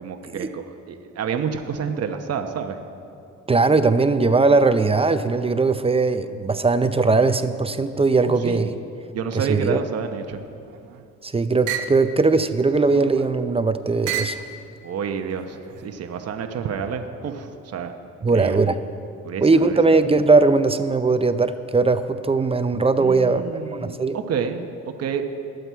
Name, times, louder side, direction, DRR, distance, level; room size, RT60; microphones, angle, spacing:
voice 1, 0.0-2.8 8.2-8.7 9.1-10.4 14.8-15.6 15.8-17.9 18.3-18.7 19.2-19.8 23.0-25.2, right 7 dB, 55° right, 5 dB, 0.9 m, -29 dB
voice 2, 3.5-8.7 9.3-9.8 11.2-14.4 18.2-18.8 19.4-23.4 23.8-24.2, right 3 dB, 20° right, 10 dB, 0.6 m, -19 dB
sound 1, 10.5-11.1 11.7-12.0 12.8-13.4 14.1-14.5 15.3-15.9, right 8 dB, 85° right, 0.9 m, -32 dB
21.0 x 7.9 x 4.7 m, 2.6 s
cardioid pair, 90°, 30 cm